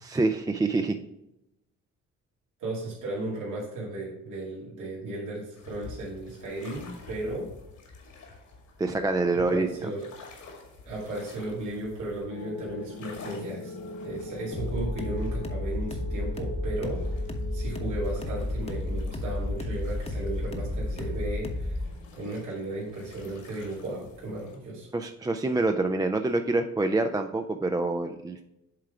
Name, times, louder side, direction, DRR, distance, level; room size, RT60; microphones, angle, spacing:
voice 1, 0.0-1.0 8.8-9.9 24.9-28.4, right 2 dB, 15° right, 6 dB, 0.4 m, -26 dB
voice 2, 2.6-7.5 9.3-10.1 10.9-13.7 14.0-21.8 22.1-24.9, right 2 dB, 80° right, -6 dB, 2.3 m, -35 dB
sound 1, 5.6-24.6, left 3 dB, 75° left, 2.1 m, -50 dB
sound 2, 12.3-23.3, left 1 dB, 50° left, 0.7 m, -43 dB
sound 3, 14.5-21.9, left 1 dB, 20° left, 0.9 m, -32 dB
7.6 x 3.7 x 4.8 m, 0.89 s
cardioid pair, 90°, 30 cm